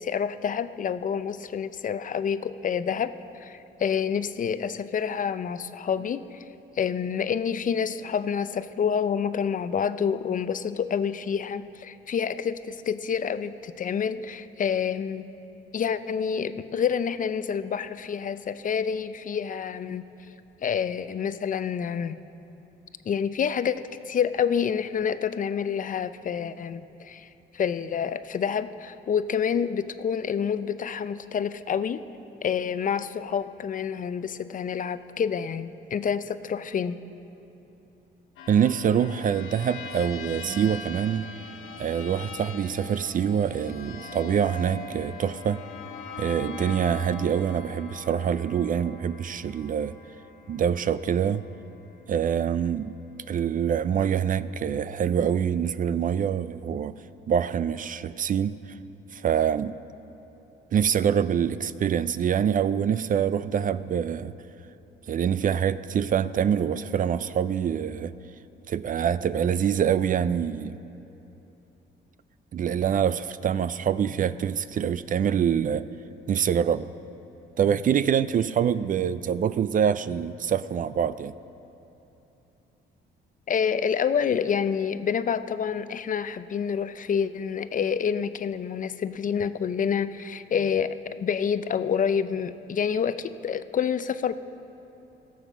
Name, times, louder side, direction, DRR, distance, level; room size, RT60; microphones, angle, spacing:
voice 1, 0.0-6.4 6.8-15.3 15.7-20.0 20.6-22.2 23.1-27.3 27.5-32.0 32.4-37.0 83.5-94.3, left 7 dB, 40° left, 13 dB, 0.5 m, -28 dB
sound 1, 38.4-51.6, left 4 dB, 85° left, 1.2 m, -41 dB
voice 2, 38.5-41.3 41.8-45.6 46.2-50.0 50.5-51.4 52.1-52.9 53.3-56.9 57.3-58.6 59.1-59.8 60.7-64.3 65.1-68.1 68.7-70.8 72.5-75.9 76.3-76.9 77.6-81.3, right 8 dB, 45° right, 15 dB, 0.4 m, -25 dB
16.5 x 7.2 x 6.0 m, 3.0 s
cardioid pair, 90°, 20 cm